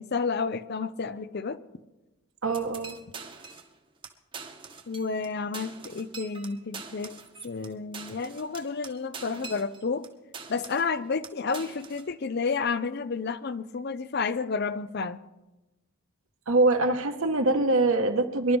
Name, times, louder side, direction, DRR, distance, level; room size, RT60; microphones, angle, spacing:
voice 1, 0.0-1.6 4.9-7.2 7.4-10.1 10.5-15.2, left 4 dB, 45° left, 0.5 m, -31 dB
voice 2, 2.4-3.0 16.5-18.6, right 2 dB, 65° right, 1.4 m, -23 dB
sound 1, 2.5-3.7 4.0-4.1 4.3-5.3 5.5-10.1 10.3-10.9 11.2-12.1, right 5 dB, 25° right, 1.1 m, -43 dB
24.0 x 11.5 x 3.5 m
head